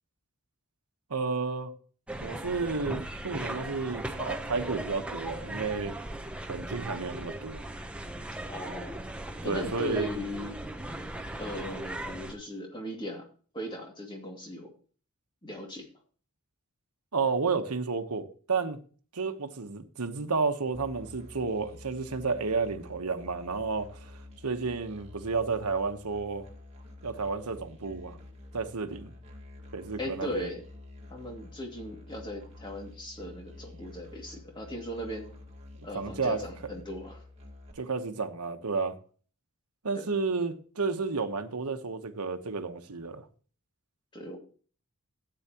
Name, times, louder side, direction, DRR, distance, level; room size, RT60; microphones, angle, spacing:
voice 1, 1.1-1.7 2.2-6.0 6.5-7.6 9.4-10.1 17.1-18.8 19.1-24.1 24.4-26.5 27.0-28.2 28.5-29.1 29.7-30.5 35.9-36.4 37.8-39.0 39.8-43.3, right 4 dB, 90° right, 1.1 m, -31 dB
sound 1, 2.1-12.3, right 1 dB, 5° right, 0.8 m, -38 dB
voice 2, 8.5-9.0 9.4-10.7 11.4-13.3 13.5-14.7 15.4-15.9 30.0-30.6 31.1-35.3 35.8-37.2 39.9-40.1 44.1-44.4, equal, 20° left, 2.3 m, -38 dB
Musical instrument, 20.7-37.7, left 2 dB, 30° right, 2.0 m, -49 dB
13.5 x 8.9 x 2.9 m
head